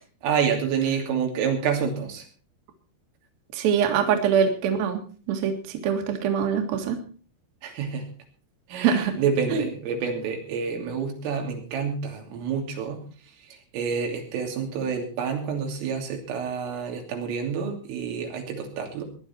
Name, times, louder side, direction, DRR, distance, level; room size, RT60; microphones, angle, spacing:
voice 1, 0.2-2.3 7.6-8.1 8.7-13.0 13.5-19.0, right 6 dB, 90° right, 1 dB, 5.5 m, -28 dB
voice 2, 3.5-5.0 5.3-7.0 8.8-9.2 9.5-9.6, right 7 dB, 60° right, 4 dB, 3.2 m, -23 dB
19.5 x 11.0 x 4.4 m, 0.40 s
omnidirectional pair, 5.7 m